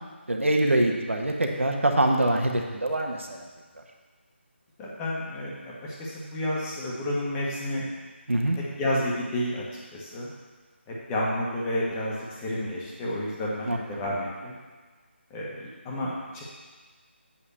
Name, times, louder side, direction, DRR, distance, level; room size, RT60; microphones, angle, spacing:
voice 1, 0.3-3.4 8.3-8.6 13.6-13.8, right 1 dB, 90° right, 2 dB, 1.7 m, -24 dB
voice 2, 4.8-7.9 8.8-9.6 9.9-10.3 11.1-14.5 15.3-16.4, left 1 dB, 10° left, -5 dB, 1.4 m, -30 dB
8.1 x 5.8 x 7.0 m, 1.4 s
figure-of-eight pair, 165°, 7 cm